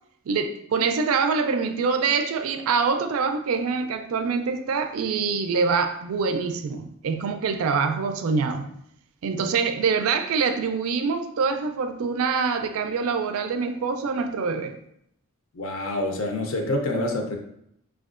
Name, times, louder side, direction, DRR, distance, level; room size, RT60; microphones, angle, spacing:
voice 1, 0.3-8.7 9.2-14.8, right 5 dB, 80° right, 0.4 m, -25 dB
voice 2, 15.5-17.4, left 1 dB, 70° left, 0.5 m, -27 dB
4.4 x 2.3 x 2.4 m
head